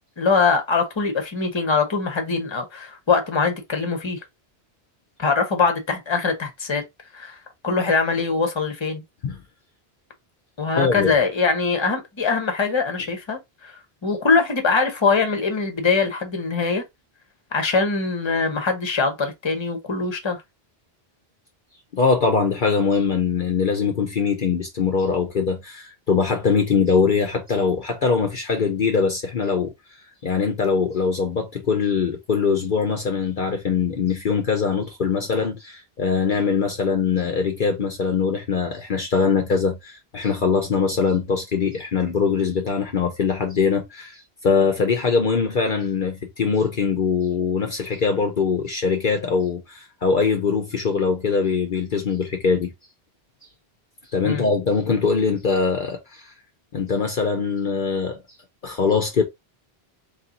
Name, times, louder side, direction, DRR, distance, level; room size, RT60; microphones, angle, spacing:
voice 1, 0.2-4.2 5.2-6.8 7.1-9.0 10.6-16.8 17.5-20.4 54.2-54.5, left 4 dB, 30° left, 1.0 m, -22 dB
voice 2, 10.7-11.1 21.9-29.7 30.2-52.7 54.1-56.3 56.7-58.2 58.6-59.2, left 5 dB, 55° left, 0.9 m, -22 dB
3.2 x 3.0 x 3.8 m
omnidirectional pair, 1.0 m